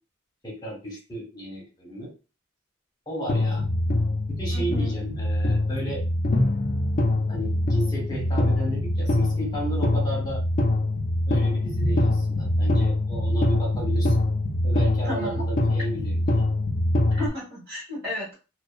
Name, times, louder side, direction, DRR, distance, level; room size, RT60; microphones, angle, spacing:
voice 1, 0.4-2.1 3.1-3.6 4.3-6.0 7.3-10.4 11.3-14.3 14.6-16.2, right 1 dB, 20° left, -3 dB, 0.9 m, -34 dB
sound 1, 3.3-17.3, left 1 dB, 45° left, 0.4 m, -24 dB
voice 2, 4.5-4.9 15.1-15.4 17.1-18.3, left 1 dB, 50° right, -4 dB, 1.3 m, -33 dB
2.6 x 2.1 x 2.4 m, 0.32 s
head